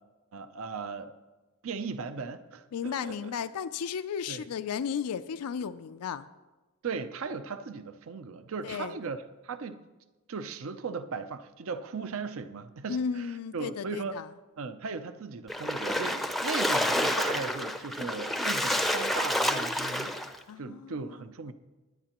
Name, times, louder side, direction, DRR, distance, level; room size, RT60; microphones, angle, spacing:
voice 1, 0.3-1.1 1.6-3.3 4.3-4.4 6.8-9.8 10.3-14.1 14.6-20.2 20.6-21.5, right 4 dB, 65° right, 11 dB, 0.5 m, -37 dB
voice 2, 2.7-6.3 8.6-8.9 12.9-14.3 20.5-21.2, left 7 dB, 90° left, 12 dB, 0.4 m, -34 dB
Splash splatter, 15.5-20.4, left 1 dB, ahead, 0.5 m, -29 dB
19.5 x 10.0 x 2.9 m, 1.2 s
head